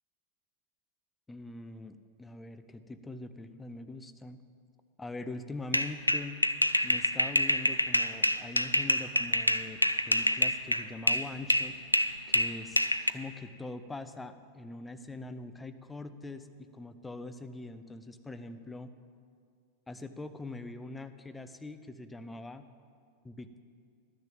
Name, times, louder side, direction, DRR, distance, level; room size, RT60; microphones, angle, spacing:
voice 1, 1.3-4.4 5.0-6.4 6.8-9.8 10.1-11.7 12.3-18.9 19.9-22.6 23.2-23.6, left 2 dB, 10° left, 10 dB, 0.6 m, -43 dB
sound 1, 5.7-11.3 11.5-13.1, left 1 dB, 90° left, 0.3 m, -26 dB
11.5 x 6.7 x 7.6 m, 2.2 s
figure-of-eight pair, 90°, 0 cm